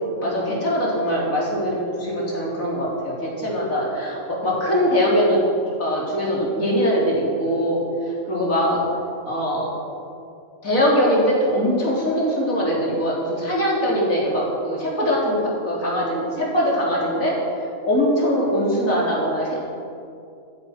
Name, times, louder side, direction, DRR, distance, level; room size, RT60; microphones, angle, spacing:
voice 1, 0.2-5.4 5.8-7.8 8.3-8.8 9.3-9.7 10.6-17.4 17.8-19.6, equal, 85° left, -5 dB, 4.2 m, -22 dB
15.0 x 13.0 x 6.0 m, 2.5 s
omnidirectional pair, 1.4 m